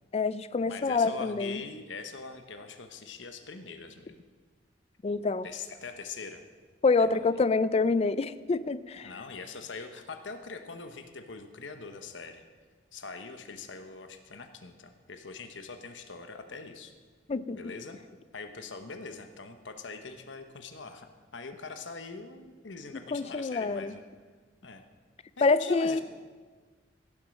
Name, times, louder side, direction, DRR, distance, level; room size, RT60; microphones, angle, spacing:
voice 1, 0.1-1.6 5.0-5.5 6.8-9.1 17.3-17.6 23.1-23.9 25.4-26.0, left 4 dB, 35° left, 16 dB, 0.4 m, -26 dB
voice 2, 0.7-4.2 5.1-6.4 7.0-7.2 9.0-12.4 12.9-16.9 17.5-18.0 18.3-24.0 24.6-24.8 25.4-26.0, left 4 dB, 90° left, 7 dB, 1.0 m, -43 dB
15.5 x 7.4 x 6.4 m, 1.5 s
head